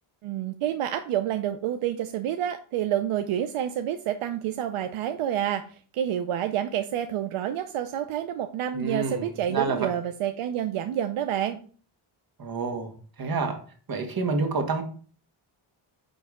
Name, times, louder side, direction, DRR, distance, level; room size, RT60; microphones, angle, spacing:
voice 1, 0.2-11.6, right 10 dB, 80° right, 8 dB, 0.6 m, -28 dB
voice 2, 8.7-9.9 12.4-13.6 13.9-14.8, right 4 dB, 45° right, 4 dB, 1.6 m, -28 dB
9.4 x 3.4 x 3.6 m, 0.43 s
cardioid pair, 85°, 49 cm